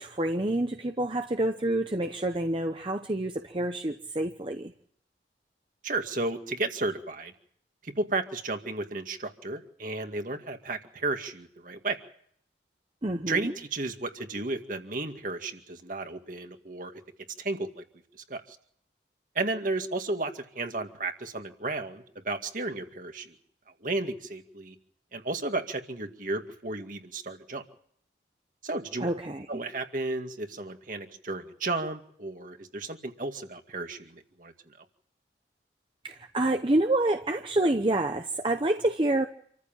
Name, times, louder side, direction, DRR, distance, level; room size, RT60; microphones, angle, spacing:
voice 1, 0.0-4.7 13.0-13.5 29.0-29.5 36.0-39.3, right 1 dB, 30° right, 6 dB, 0.9 m, -28 dB
voice 2, 5.8-7.3 7.8-12.0 13.3-16.9 17.4-17.8 18.3-18.4 19.4-23.3 23.8-24.7 25.1-27.6 28.6-29.1 29.5-34.5, right 2 dB, 50° right, 5 dB, 2.2 m, -33 dB
27.0 x 14.5 x 7.4 m, 0.66 s
head